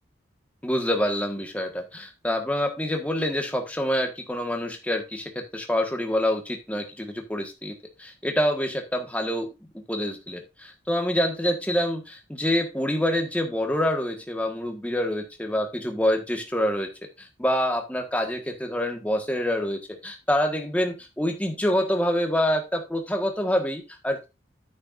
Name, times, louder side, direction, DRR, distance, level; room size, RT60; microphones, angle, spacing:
voice 1, 0.6-9.5 9.9-16.9 17.2-24.3, equal, 10° left, 3 dB, 1.4 m, -26 dB
9.8 x 9.1 x 2.5 m, 0.26 s
head